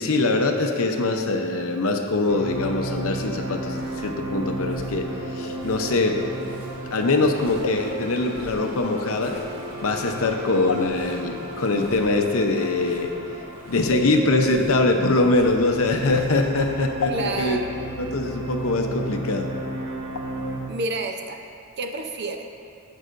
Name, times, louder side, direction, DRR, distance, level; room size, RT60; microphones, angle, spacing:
voice 1, 0.0-6.2 6.9-9.4 9.8-13.1 13.7-17.6 18.0-19.5, left 2 dB, 75° left, 4 dB, 0.7 m, -23 dB
sound 1, 2.3-20.6, right 2 dB, 80° right, 1.2 m, -34 dB
sound 2, 3.7-16.8, equal, 10° right, 1.4 m, -44 dB
voice 2, 17.1-17.8 20.7-21.4 21.8-22.4, right 2 dB, 50° right, 5 dB, 0.6 m, -29 dB
15.5 x 5.6 x 2.5 m, 2.4 s
head